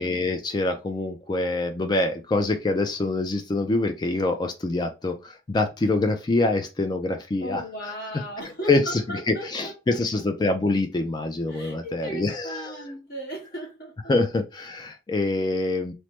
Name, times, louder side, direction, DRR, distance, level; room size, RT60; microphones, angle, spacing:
voice 1, 0.0-7.6 8.7-9.0 9.3-12.9 14.1-15.9, left 2 dB, 25° left, 0.3 m, -25 dB
voice 2, 7.4-10.0 11.5-14.0, right 1 dB, 60° left, 1.3 m, -36 dB
3.1 x 2.0 x 2.9 m
head